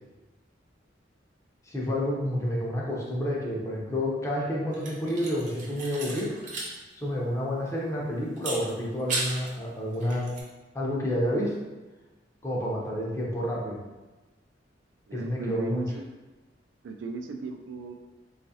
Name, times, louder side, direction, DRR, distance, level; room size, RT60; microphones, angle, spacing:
voice 1, 1.7-6.4 6.9-10.3 10.7-11.6 12.4-13.8 15.1-15.8, equal, 15° left, -4 dB, 0.6 m, -29 dB
sound 1, 4.7-6.7 7.0-7.1 8.4-9.5 9.9-10.4, right 2 dB, 45° right, 0.6 m, -35 dB
voice 2, 15.1-16.1 16.8-17.9, right 3 dB, 75° right, 4 dB, 0.3 m, -36 dB
3.8 x 2.4 x 2.7 m, 1.1 s
head